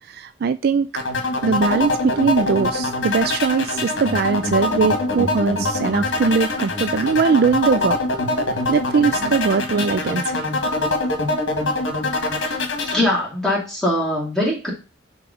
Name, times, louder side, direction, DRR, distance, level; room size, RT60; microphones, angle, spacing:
voice 1, 0.1-0.9 1.4-8.0 8.7-10.5, right 5 dB, 55° right, 0.4 m, -20 dB
sound 1, 1.0-13.0, left 2 dB, 80° left, 1.5 m, -23 dB
voice 2, 12.9-14.7, left 1 dB, 5° left, 2.8 m, -22 dB
4.9 x 3.8 x 5.0 m
head